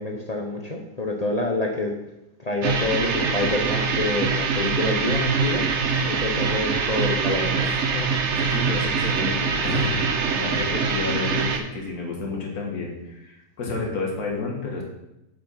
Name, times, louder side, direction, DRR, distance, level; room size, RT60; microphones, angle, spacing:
voice 1, 0.0-2.0 2.4-5.7 6.0-8.1 10.5-10.6, left 2 dB, 40° left, 1 dB, 0.5 m, -27 dB
sound 1, 2.6-11.6, right 5 dB, 55° right, 0.9 m, -24 dB
voice 2, 8.3-10.0 10.3-14.8, left 3 dB, 65° left, -1 dB, 2.1 m, -30 dB
7.5 x 5.0 x 5.6 m, 0.91 s
omnidirectional pair, 1.8 m